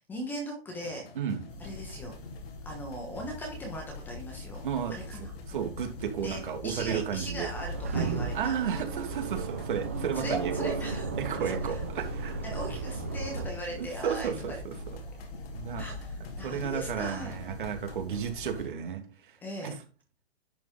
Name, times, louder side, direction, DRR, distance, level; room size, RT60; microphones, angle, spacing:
voice 1, 0.1-1.0 1.6-2.2 2.6-4.6 4.9-5.3 6.2-8.5 10.1-11.1 11.6-11.8 12.4-14.6 15.8-17.4 19.4-19.8, right 1 dB, 5° left, 1 dB, 1.1 m, -39 dB
sound 1, 0.7-18.7, left 4 dB, 75° left, 2.7 m, -49 dB
sound 2, 1.5-18.6, left 2 dB, 60° left, 2.7 m, -43 dB
voice 2, 4.6-4.9 5.5-7.5 8.3-10.7 11.2-12.4 13.7-14.7 15.5-15.9 16.4-19.8, right 8 dB, 55° right, 5 dB, 2.3 m, -33 dB
sound 3, 7.5-13.5, right 4 dB, 15° right, 0.4 m, -34 dB
11.0 x 5.2 x 3.8 m, 0.35 s
hypercardioid pair, 170°, 30 cm